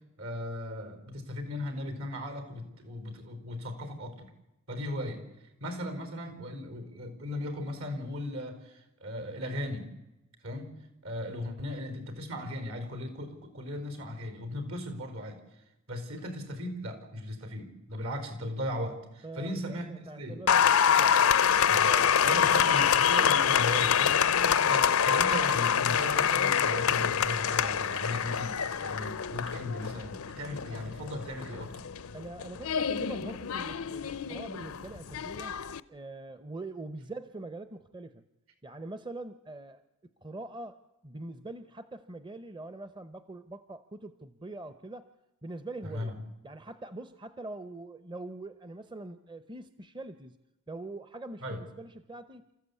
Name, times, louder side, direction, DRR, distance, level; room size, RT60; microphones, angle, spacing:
voice 1, 0.2-4.3 4.7-5.2 5.6-9.9 10.4-10.7 11.0-15.4 15.9-20.4 21.7-31.9 45.8-46.1 51.4-51.6, left 1 dB, 75° right, 8 dB, 4.6 m, -37 dB
voice 2, 19.2-21.4 32.1-35.6 35.9-38.2 38.6-39.8 40.2-45.1 45.4-46.1 46.4-50.4 50.7-52.5, right 2 dB, 20° right, 11 dB, 0.7 m, -43 dB
Applause, 20.5-35.8, left 8 dB, 85° left, 0.7 m, -26 dB
29.5 x 14.5 x 8.3 m, 0.97 s
head